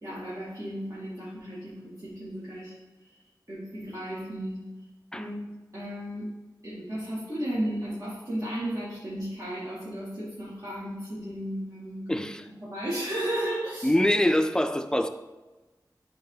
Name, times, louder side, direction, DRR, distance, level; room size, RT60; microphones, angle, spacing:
voice 1, 0.0-2.7 3.1-3.2 3.5-4.6 5.2-6.3 6.6-13.9, right 1 dB, 45° right, -11 dB, 2.2 m, -34 dB
voice 2, 12.1-12.4 13.8-15.1, left 1 dB, 10° left, 9 dB, 0.5 m, -24 dB
9.6 x 3.8 x 3.9 m, 1.2 s
wide cardioid pair, 60°, 8 cm